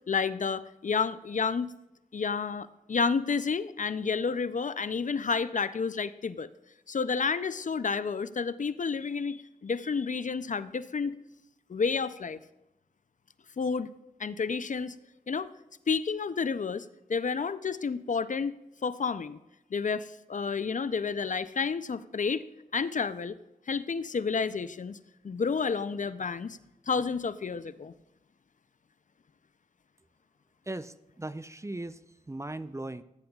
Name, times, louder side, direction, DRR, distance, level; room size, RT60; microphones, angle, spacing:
voice 1, 0.1-1.7 2.1-6.5 6.9-11.2 11.7-12.4 13.6-13.9 14.2-15.0 15.3-15.5 15.9-19.4 19.7-22.4 22.7-23.4 23.7-25.0 25.2-26.6 26.9-27.9, left 5 dB, 60° left, 14 dB, 0.5 m, -30 dB
voice 2, 30.7-32.0 32.3-33.0, right 2 dB, 20° right, 13 dB, 0.5 m, -38 dB
15.0 x 9.5 x 2.3 m, 0.91 s
cardioid pair, 40°, 15 cm